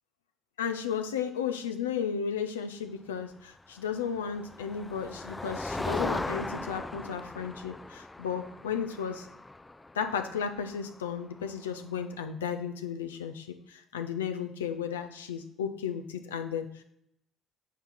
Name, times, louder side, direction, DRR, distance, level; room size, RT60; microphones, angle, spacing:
voice 1, 0.6-9.3 9.9-16.8, left 7 dB, 85° left, 7 dB, 0.6 m, -34 dB
Motor vehicle (road), 3.9-11.7, left 2 dB, 15° left, 0.4 m, -38 dB
9.2 x 3.2 x 5.8 m, 0.75 s
hypercardioid pair, 50°, 0 cm